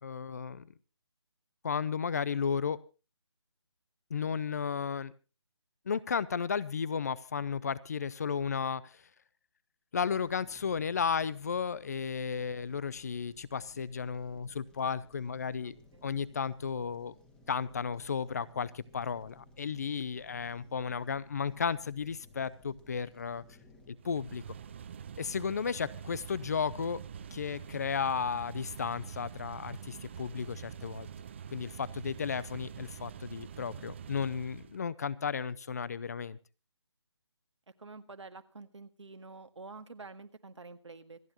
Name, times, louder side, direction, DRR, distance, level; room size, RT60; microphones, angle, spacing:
voice 1, 0.0-0.7 1.6-2.8 4.1-5.1 5.9-9.0 9.9-15.8 16.0-17.2 17.5-23.4 23.9-24.4 25.2-27.0 27.3-31.1 31.5-36.4, left 6 dB, 35° left, 21 dB, 0.6 m, -34 dB
sound 1, 10.0-23.9, left 2 dB, 5° left, 1.6 m, -60 dB
voice 2, 15.6-16.1 25.6-25.8 37.8-41.2, right 3 dB, 85° right, 9 dB, 1.8 m, -48 dB
sound 2, 24.0-34.8, right 8 dB, 25° right, 0.7 m, -46 dB
26.5 x 9.0 x 2.9 m, 0.32 s
figure-of-eight pair, 165°, 15 cm